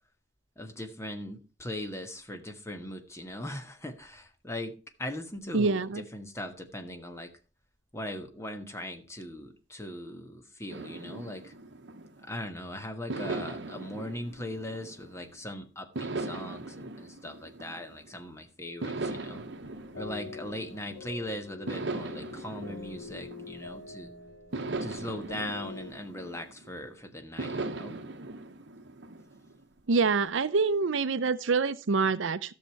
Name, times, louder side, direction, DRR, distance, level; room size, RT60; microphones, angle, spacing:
voice 1, 0.6-7.3 7.9-11.5 12.2-19.4 20.0-24.1 24.8-28.0, left 1 dB, 15° left, 1.3 m, -39 dB
voice 2, 5.5-6.0 29.9-32.5, right 4 dB, 85° right, 0.6 m, -26 dB
sound 1, 10.7-12.5 13.1-15.4 15.9-18.2 18.8-21.1 21.7-23.9 24.5-26.8 27.4-29.6, right 2 dB, 65° right, 1.0 m, -39 dB
sound 2, 18.9-25.9, left 4 dB, 55° left, 5.4 m, -45 dB
13.5 x 6.8 x 4.6 m
head